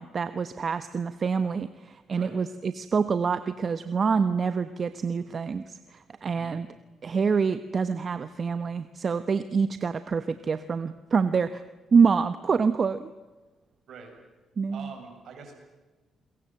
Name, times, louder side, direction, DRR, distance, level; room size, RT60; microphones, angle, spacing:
voice 1, 0.0-6.7 7.0-11.6 11.9-13.1 14.6-14.9, right 5 dB, 45° right, 12 dB, 1.0 m, -26 dB
voice 2, 14.7-15.5, right 5 dB, 65° right, 3 dB, 7.9 m, -44 dB
29.0 x 22.5 x 7.8 m, 1.2 s
cardioid pair, 90°, 0 cm